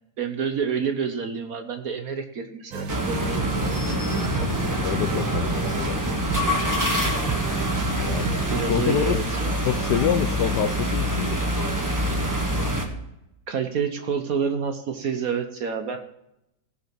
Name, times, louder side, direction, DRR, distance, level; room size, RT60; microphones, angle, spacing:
voice 1, 0.2-3.4 8.5-9.5 13.5-16.0, right 6 dB, 55° right, 7 dB, 1.1 m, -28 dB
sound 1, 2.7-8.6, right 5 dB, 85° right, 2.1 m, -31 dB
sound 2, 2.9-12.9, equal, 10° right, 1.2 m, -26 dB
voice 2, 4.4-6.0 8.1-8.3 8.7-9.2 9.6-11.4, left 8 dB, 70° left, 11 dB, 1.1 m, -26 dB
16.0 x 6.3 x 5.8 m, 0.85 s
omnidirectional pair, 2.1 m